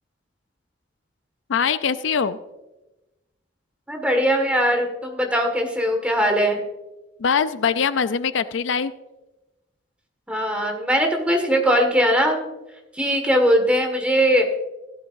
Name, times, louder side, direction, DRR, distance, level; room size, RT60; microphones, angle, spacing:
voice 1, 1.5-2.4 7.2-8.9, left 6 dB, 70° left, 13 dB, 0.5 m, -22 dB
voice 2, 3.9-6.6 10.3-12.4 12.9-14.4, equal, 5° right, 3 dB, 1.8 m, -20 dB
15.5 x 12.5 x 2.6 m, 1.0 s
head